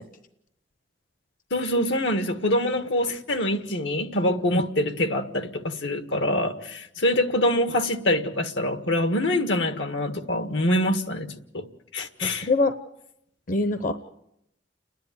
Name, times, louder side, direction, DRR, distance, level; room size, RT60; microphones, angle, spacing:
voice 1, 1.5-11.3 11.5-11.6 11.9-12.5, left 1 dB, 85° left, 8 dB, 1.7 m, -25 dB
voice 2, 12.2-12.7 13.5-13.9, left 2 dB, 50° left, 10 dB, 0.9 m, -23 dB
30.0 x 10.5 x 9.5 m, 0.79 s
head